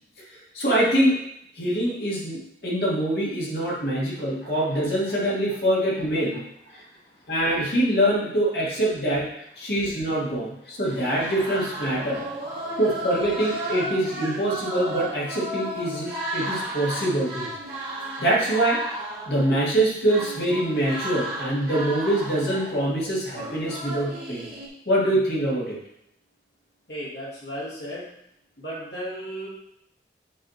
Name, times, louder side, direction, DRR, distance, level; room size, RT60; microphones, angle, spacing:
voice 1, 0.2-1.2 1.6-6.4 7.3-9.3 9.6-12.2 12.8-17.5 18.2-18.8 19.3-24.5 24.9-25.8, right 1 dB, 65° left, -5 dB, 2.1 m, -24 dB
sound 1, 10.8-24.7, right 1 dB, 55° right, 1.8 m, -34 dB
voice 2, 26.9-28.0 28.6-29.5, equal, 80° left, -8 dB, 2.1 m, -34 dB
7.4 x 3.3 x 4.2 m, 0.77 s
head